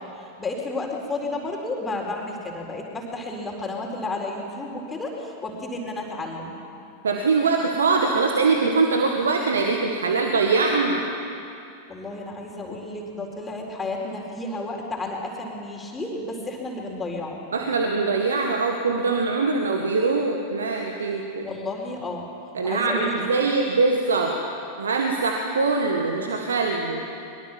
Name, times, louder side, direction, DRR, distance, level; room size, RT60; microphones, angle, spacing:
voice 1, 0.1-6.5 11.9-17.4 21.4-22.3 22.6-23.3, left 2 dB, 15° left, 0 dB, 4.2 m, -32 dB
voice 2, 7.0-11.0 17.5-21.5 22.5-24.4 24.8-27.0, right 4 dB, 70° right, 3 dB, 1.8 m, -23 dB
23.5 x 23.0 x 7.3 m, 2.6 s
figure-of-eight pair, 90°, 0 cm